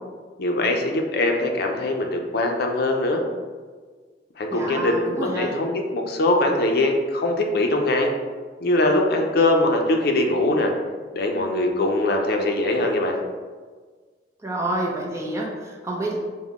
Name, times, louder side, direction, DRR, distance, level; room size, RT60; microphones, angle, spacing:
voice 1, 0.4-3.2 4.4-8.1 8.6-10.7 11.1-13.2, left 2 dB, 60° left, 2 dB, 0.5 m, -22 dB
voice 2, 4.5-5.5 14.4-16.2, right 1 dB, 15° right, -2 dB, 0.6 m, -28 dB
5.3 x 2.1 x 3.5 m, 1.5 s
head